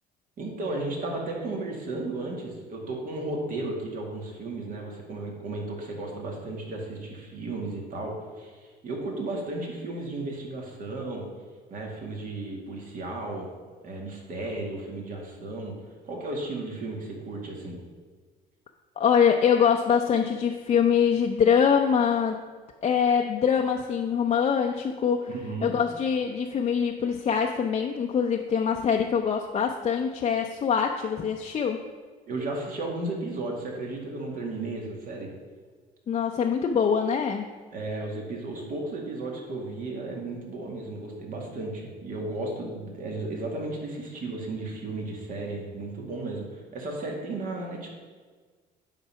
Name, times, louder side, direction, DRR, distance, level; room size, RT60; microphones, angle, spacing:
voice 1, 0.4-11.3 11.7-13.5 13.8-15.7 16.0-17.8 25.3-25.7 32.3-35.3 37.7-47.9, right 2 dB, 55° right, 0 dB, 2.2 m, -34 dB
voice 2, 19.0-22.4 22.8-25.3 25.6-31.8 36.1-37.5, left 7 dB, 40° left, 2 dB, 0.6 m, -24 dB
10.0 x 4.0 x 5.7 m, 1.5 s
cardioid pair, 110°, 17 cm